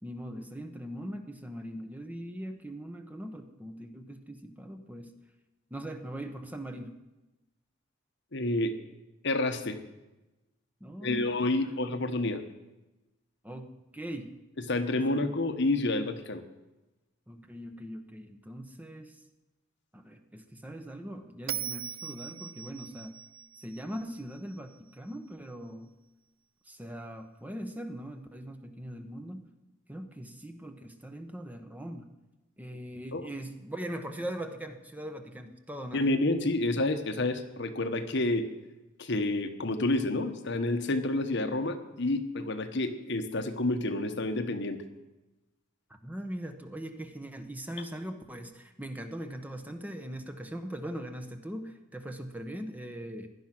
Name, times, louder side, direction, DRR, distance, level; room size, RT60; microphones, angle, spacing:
voice 1, 0.0-5.1 5.7-6.9 10.8-11.5 13.4-14.3 14.9-15.3 17.3-19.2 19.9-23.2 23.6-26.0 26.7-29.5 29.9-32.1 32.6-36.1 46.0-53.3, right 1 dB, 10° right, 6 dB, 1.0 m, -41 dB
voice 2, 8.3-8.7 9.2-9.8 11.0-12.4 14.7-16.4 33.1-33.2 35.9-38.4 39.0-44.8, left 2 dB, 55° left, 8 dB, 1.2 m, -29 dB
Bell, 21.5-24.7, right 10 dB, 80° right, 0.7 m, -40 dB
16.5 x 11.0 x 6.0 m, 1.0 s
head